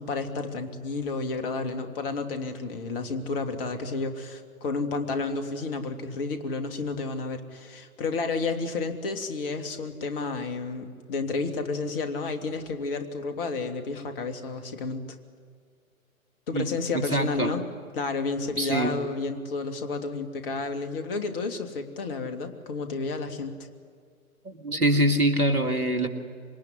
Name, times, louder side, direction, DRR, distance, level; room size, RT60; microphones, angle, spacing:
voice 1, 0.0-15.0 16.5-17.7 17.9-23.5, left 3 dB, 40° left, 7 dB, 2.7 m, -31 dB
voice 2, 16.5-17.5 18.5-19.0 24.4-26.1, right 1 dB, 85° right, 7 dB, 2.7 m, -24 dB
26.0 x 23.0 x 9.9 m, 2.1 s
figure-of-eight pair, 120°, 43 cm